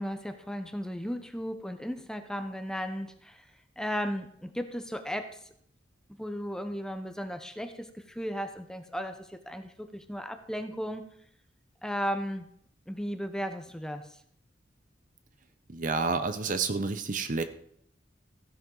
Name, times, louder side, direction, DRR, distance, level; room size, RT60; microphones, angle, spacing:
voice 1, 0.0-3.5 3.8-5.4 6.1-11.1 11.8-12.5 12.9-14.1, equal, 5° left, 7 dB, 0.8 m, -35 dB
voice 2, 15.7-17.4, right 4 dB, 45° right, 10 dB, 0.7 m, -29 dB
15.0 x 10.5 x 3.9 m, 0.66 s
head